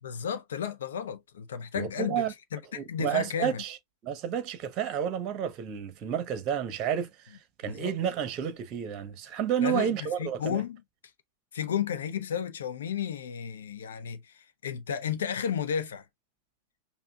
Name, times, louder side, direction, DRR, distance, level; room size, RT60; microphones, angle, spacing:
voice 1, 0.0-2.3 2.5-3.6 7.6-7.9 9.6-10.8 11.5-16.0, left 8 dB, 70° left, 0.7 m, -33 dB
voice 2, 1.7-2.3 2.7-3.8 4.0-7.4 7.6-10.6, right 9 dB, 40° right, 1.0 m, -30 dB
5.5 x 2.3 x 2.3 m
figure-of-eight pair, 95°, 0 cm